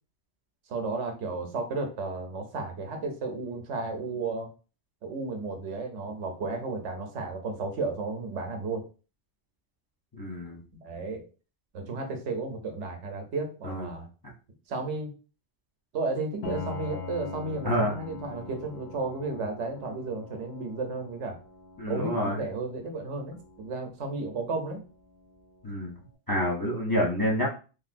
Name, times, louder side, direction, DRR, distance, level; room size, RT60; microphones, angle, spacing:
voice 1, 0.7-4.5 5.0-8.8 10.8-11.2 11.7-14.1 14.7-15.1 15.9-21.4 21.9-24.8, right 3 dB, 80° right, 4 dB, 1.0 m, -33 dB
voice 2, 10.1-10.6 13.6-13.9 17.6-17.9 21.8-22.4 25.6-25.9 26.3-27.5, equal, 25° left, -2 dB, 0.6 m, -28 dB
Piano, 16.4-26.0, left 5 dB, 70° left, 0.8 m, -43 dB
3.3 x 2.5 x 2.5 m, 0.35 s
omnidirectional pair, 1.2 m